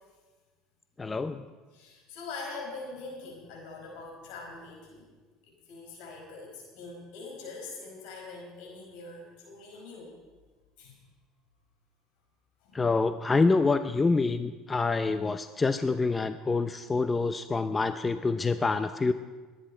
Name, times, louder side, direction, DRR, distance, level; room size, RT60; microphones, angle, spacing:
voice 1, 1.0-1.4 12.7-19.1, left 3 dB, 20° left, 10 dB, 0.6 m, -26 dB
voice 2, 1.7-5.1 5.7-10.1 10.8-10.9 12.6-12.8, left 3 dB, 75° left, 0 dB, 5.3 m, -43 dB
22.0 x 10.0 x 4.4 m, 1.4 s
supercardioid pair, 90°, 0 cm